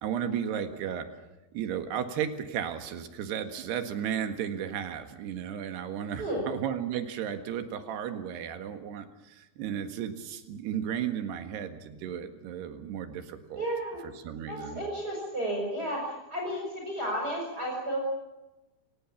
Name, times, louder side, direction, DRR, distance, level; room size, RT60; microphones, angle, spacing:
voice 1, 0.0-1.1 1.5-13.7 14.0-14.8, right 9 dB, 75° right, 7 dB, 3.7 m, -34 dB
voice 2, 13.6-14.0 14.5-18.0, right 1 dB, 20° right, -1 dB, 5.9 m, -32 dB
28.5 x 17.5 x 7.3 m, 1.0 s
omnidirectional pair, 4.9 m